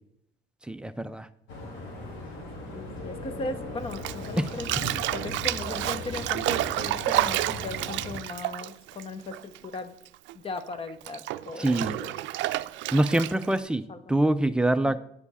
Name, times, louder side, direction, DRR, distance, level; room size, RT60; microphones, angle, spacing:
voice 1, 0.7-1.3 4.4-4.5 11.6-12.0 12.9-13.8 14.1-15.0, right 1 dB, 5° right, 11 dB, 0.3 m, -24 dB
sound 1, 1.5-8.1, left 2 dB, 85° left, 2.5 m, -39 dB
voice 2, 2.7-9.9 10.3-12.1 13.1-13.2 13.5-13.6 13.9-14.0 14.8-15.0, left 3 dB, 30° left, 11 dB, 0.7 m, -38 dB
Bathtub (filling or washing), 3.9-9.8 10.0-13.6, right 16 dB, 80° right, 0.4 m, -30 dB
9.8 x 6.9 x 4.1 m, 0.75 s
cardioid pair, 155°, 19 cm